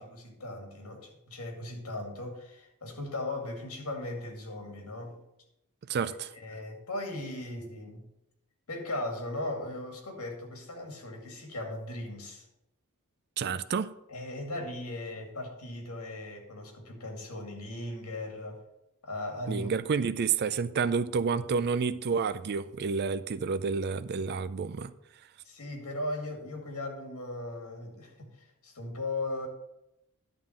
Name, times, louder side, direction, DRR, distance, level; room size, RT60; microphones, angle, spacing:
voice 1, 0.0-5.2 6.1-8.1 8.7-12.5 14.1-18.6 19.0-19.7 25.4-29.5, left 2 dB, 75° left, 2.3 m, -38 dB
voice 2, 5.9-6.3 13.4-13.9 19.5-24.9, right 5 dB, 45° right, 0.4 m, -29 dB
11.0 x 3.8 x 7.4 m
head